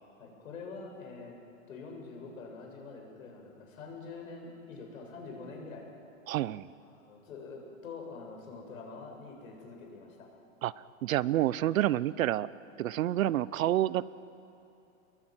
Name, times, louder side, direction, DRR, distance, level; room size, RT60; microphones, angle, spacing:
voice 1, 0.2-1.3 1.7-5.8 6.8-10.3 13.2-13.3, left 4 dB, 85° left, 1 dB, 7.8 m, -45 dB
voice 2, 6.3-6.7 10.6-10.7 11.0-12.5 12.8-14.1, right 13 dB, 80° right, 19 dB, 0.9 m, -28 dB
28.5 x 22.0 x 9.1 m, 2.8 s
supercardioid pair, 160°, 40 cm